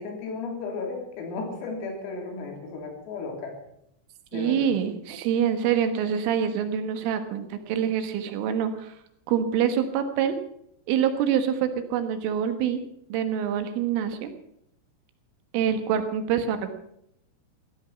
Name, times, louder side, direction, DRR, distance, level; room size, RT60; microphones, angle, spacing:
voice 1, 0.0-3.5 4.3-4.7, left 4 dB, 85° left, 3 dB, 5.8 m, -34 dB
voice 2, 4.3-9.0 9.3-10.4 10.9-12.8 13.1-14.3 15.5-16.7, right 8 dB, 75° right, 8 dB, 3.8 m, -25 dB
16.0 x 14.0 x 5.9 m, 0.75 s
omnidirectional pair, 5.9 m